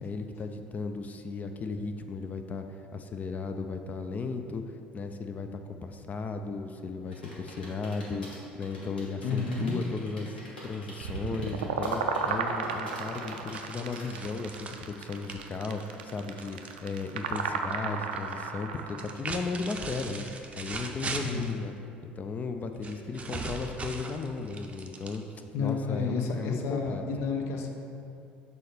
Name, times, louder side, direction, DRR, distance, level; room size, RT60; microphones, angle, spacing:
voice 1, 0.0-4.6 4.9-21.7 22.2-25.2 25.6-27.0, left 4 dB, 30° left, 7 dB, 0.4 m, -35 dB
sound 1, 7.1-14.2, left 1 dB, 85° left, 1.1 m, -46 dB
voice 2, 9.2-9.7 21.2-21.5 25.5-27.7, left 5 dB, 55° left, 3 dB, 0.7 m, -31 dB
sound 2, 11.0-19.1, right 5 dB, 75° right, 0.4 m, -33 dB
sound 3, 13.5-17.5 17.7-18.3 18.9-21.6 22.8-25.5, right 3 dB, 25° right, 0.6 m, -39 dB
6.4 x 4.1 x 4.3 m, 2.6 s
figure-of-eight pair, 65°, 5 cm